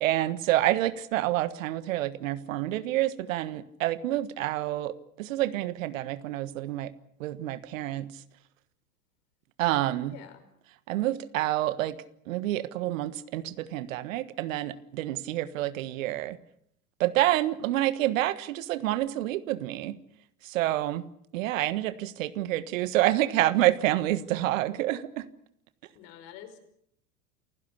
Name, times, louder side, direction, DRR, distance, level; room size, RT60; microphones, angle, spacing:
voice 1, 0.0-6.9 7.2-8.1 9.6-10.1 10.9-12.0 12.3-16.4 17.0-20.0 20.4-21.0 21.3-25.3, right 15 dB, 60° right, 15 dB, 1.5 m, -28 dB
voice 2, 10.1-10.5 25.9-26.6, left 10 dB, 50° left, 8 dB, 5.4 m, -47 dB
29.0 x 16.0 x 8.4 m, 0.73 s
figure-of-eight pair, 90°, 45 cm